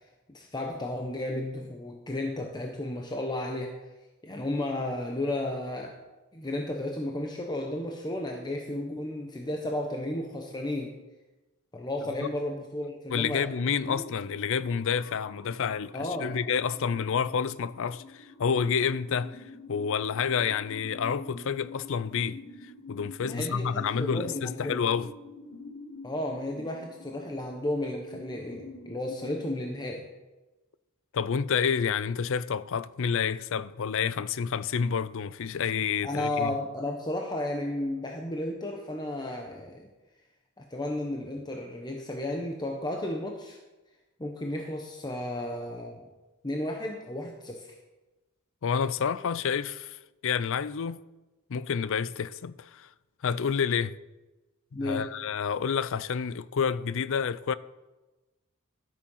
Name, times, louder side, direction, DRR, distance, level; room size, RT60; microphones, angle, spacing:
voice 1, 0.3-3.8 4.2-6.0 6.3-11.0 11.7-13.5 13.9-14.0 15.9-16.3 23.2-24.8 26.0-30.1 36.0-39.9 40.6-43.6 44.2-46.1 46.4-47.7 54.7-55.2, left 1 dB, 20° left, 1.0 m, -33 dB
voice 2, 13.1-22.4 22.9-25.1 31.1-36.5 48.6-51.0 51.5-52.9 53.2-54.0 54.8-57.5, left 6 dB, 65° left, 0.5 m, -29 dB
sound 1, 13.7-29.6, left 3 dB, 85° left, 3.3 m, -47 dB
13.0 x 8.6 x 5.6 m
head